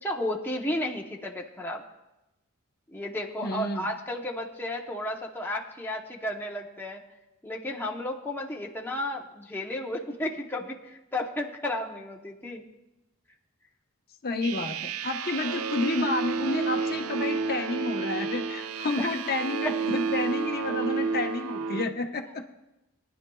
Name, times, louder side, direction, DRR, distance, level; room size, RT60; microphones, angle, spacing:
voice 1, 0.0-1.8 2.9-7.0 7.4-10.8 11.1-12.6 19.0-19.1 19.6-19.7, left 1 dB, 10° left, 0 dB, 0.8 m, -33 dB
voice 2, 3.4-3.9 14.2-22.5, left 3 dB, 45° left, 4 dB, 0.9 m, -30 dB
sound 1, 14.4-21.9, right 5 dB, 80° right, 0.5 m, -31 dB
22.0 x 10.5 x 2.3 m, 0.96 s
head